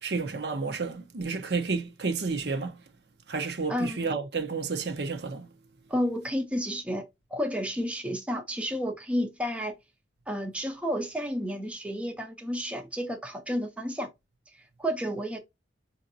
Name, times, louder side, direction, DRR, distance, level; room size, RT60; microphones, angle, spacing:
voice 1, 0.0-2.8 3.3-5.5, right 4 dB, 60° right, 0.8 m, -31 dB
voice 2, 3.7-4.1 5.9-7.0 7.3-9.7 10.3-14.1 14.5-15.4, equal, 5° right, 0.6 m, -31 dB
4.9 x 2.6 x 2.7 m
head